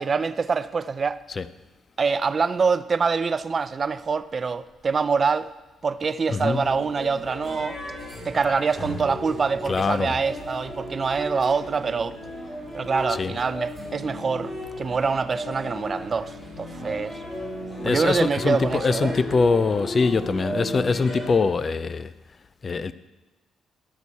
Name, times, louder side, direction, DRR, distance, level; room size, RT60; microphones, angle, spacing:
voice 1, 0.0-1.2 2.0-5.5 5.8-7.8 8.2-12.2 12.7-17.2 17.8-19.1, right 5 dB, 40° right, 0.4 m, -25 dB
voice 2, 6.3-6.6 9.7-10.2 13.1-13.3 17.8-22.1 22.6-22.9, left 4 dB, 40° left, 0.4 m, -23 dB
sound 1, 6.4-21.3, left 1 dB, 20° left, 3.7 m, -35 dB
12.0 x 6.2 x 4.1 m
cardioid pair, 90°, 0 cm